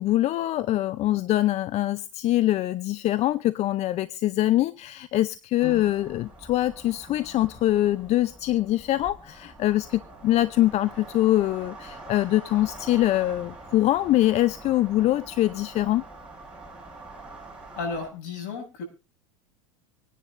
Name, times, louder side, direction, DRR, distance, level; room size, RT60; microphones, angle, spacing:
voice 1, 0.0-16.0, left 14 dB, 40° left, 0.6 m, -24 dB
sound 1, 5.6-18.1, right 2 dB, 5° right, 6.7 m, -45 dB
voice 2, 17.7-18.8, left 4 dB, 65° left, 7.2 m, -33 dB
25.5 x 10.0 x 2.6 m
hypercardioid pair, 100°, 17 cm